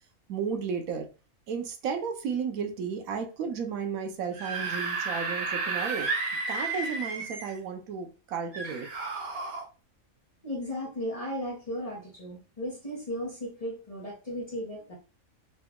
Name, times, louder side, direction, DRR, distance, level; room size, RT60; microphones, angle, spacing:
voice 1, 0.3-1.1 1.5-6.1 6.5-8.9, right 6 dB, 85° right, 1.1 m, -33 dB
Screaming / Screech, 4.2-7.6 8.5-9.6, right 4 dB, 50° right, 1.4 m, -32 dB
voice 2, 10.4-15.0, equal, 30° left, 0.8 m, -35 dB
3.9 x 2.3 x 3.5 m
omnidirectional pair, 1.4 m